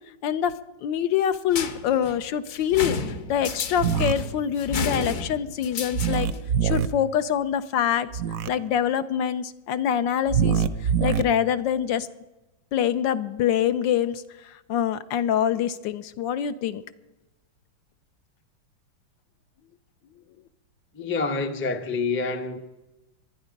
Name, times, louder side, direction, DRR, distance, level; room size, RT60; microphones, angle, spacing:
voice 1, 0.2-0.5 0.8-3.0 3.3-6.3 6.6-8.1 8.5-10.6 11.0-12.1 12.7-14.2 14.7-16.8, left 9 dB, 75° left, 1.4 m, -25 dB
sound 1, 1.5-6.5, left 4 dB, 50° left, 1.3 m, -32 dB
sound 2, 3.8-4.1 5.9-6.9 8.1-8.5 10.3-11.2, right 8 dB, 65° right, 0.9 m, -23 dB
voice 2, 20.9-22.6, left 4 dB, 15° left, 0.4 m, -27 dB
25.5 x 9.9 x 5.2 m
omnidirectional pair, 2.1 m